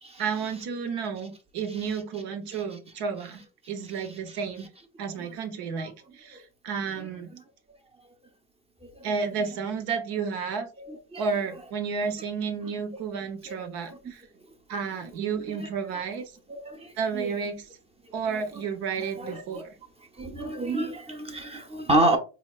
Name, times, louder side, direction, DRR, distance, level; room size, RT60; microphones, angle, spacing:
voice 1, 0.2-3.4 3.7-4.7 5.0-7.3 9.0-10.7 11.2-14.2 14.7-16.3 17.0-17.7 18.1-19.7, right 5 dB, 70° right, 0.9 m, -31 dB
voice 2, 10.8-11.3 12.9-13.0 13.5-13.6 13.9-14.0 15.6-15.7 16.2-16.3 16.5-17.3 18.3-18.6 19.0-19.6 20.2-22.2, right 1 dB, 15° right, 0.7 m, -30 dB
4.1 x 2.9 x 2.4 m
supercardioid pair, 90°, 38 cm